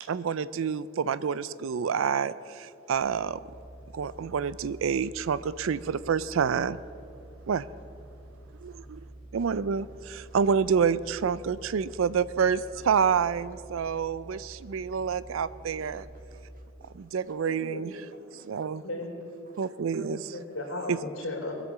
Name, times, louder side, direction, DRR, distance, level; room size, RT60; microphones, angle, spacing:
voice 1, 0.0-3.4 3.9-6.8 7.5-7.7 8.6-9.0 9.3-16.1 16.9-18.0 18.4-18.8 19.6-20.2 20.9-21.0, right 6 dB, 75° right, 17 dB, 0.4 m, -28 dB
sound 1, 2.9-16.5, right 1 dB, 5° right, 4.5 m, -48 dB
voice 2, 8.6-9.5 13.8-13.9 15.8-15.9 16.3-17.5 18.1-18.5 19.5-19.7, right 1 dB, 45° right, 3 dB, 1.8 m, -61 dB
voice 3, 17.5-17.8 18.8-19.3 20.0-21.5, left 2 dB, 85° left, 0 dB, 3.5 m, -36 dB
20.5 x 8.2 x 7.3 m, 2.8 s
head